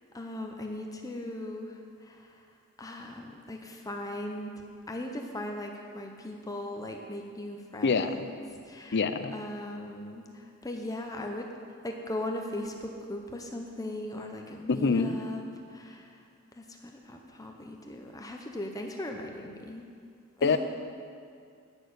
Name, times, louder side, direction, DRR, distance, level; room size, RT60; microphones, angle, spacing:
voice 1, 0.1-2.4 2.8-4.5 4.9-9.0 9.3-11.5 11.8-16.2 16.5-19.8 20.4-20.6, left 1 dB, 15° left, 2 dB, 0.7 m, -39 dB
voice 2, 7.8-8.2 8.9-9.3 14.7-15.2 20.4-20.6, left 4 dB, 50° left, 9 dB, 0.5 m, -25 dB
9.7 x 6.6 x 8.0 m, 2.3 s
head